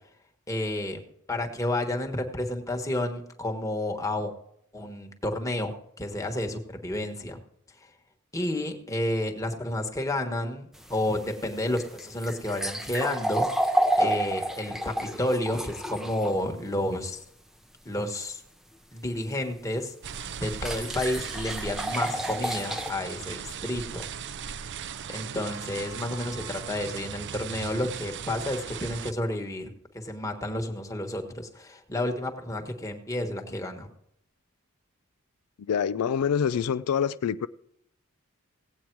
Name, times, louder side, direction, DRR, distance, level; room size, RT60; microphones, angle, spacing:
voice 1, 0.5-1.0 1.3-4.3 4.7-7.4 7.8-7.9 8.3-17.2 17.8-18.4 18.9-19.9 20.4-24.1 25.1-33.9, left 1 dB, 15° left, 1.3 m, -31 dB
sound 1, 10.7-16.3 19.4-19.5 20.6-22.9, right 1 dB, ahead, 0.6 m, -29 dB
sound 2, 20.0-29.1, right 7 dB, 55° right, 0.5 m, -38 dB
sound 3, 24.6-27.0 27.3-27.4, right 1 dB, 75° right, 1.5 m, -48 dB
voice 2, 35.6-37.5, left 7 dB, 80° left, 0.4 m, -26 dB
17.0 x 8.6 x 4.6 m
head